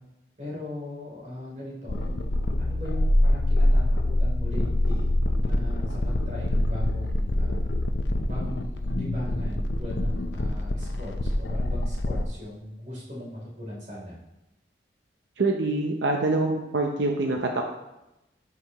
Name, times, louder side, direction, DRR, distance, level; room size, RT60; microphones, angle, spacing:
voice 1, 0.4-2.1 2.6-5.0 5.4-7.6 8.3-14.1, left 1 dB, 40° right, -5 dB, 3.3 m, -38 dB
sound 1, 1.9-12.3, left 1 dB, 80° left, 0.7 m, -25 dB
voice 2, 15.4-17.6, right 2 dB, 85° right, 2 dB, 0.7 m, -25 dB
13.0 x 6.1 x 3.0 m, 0.94 s
head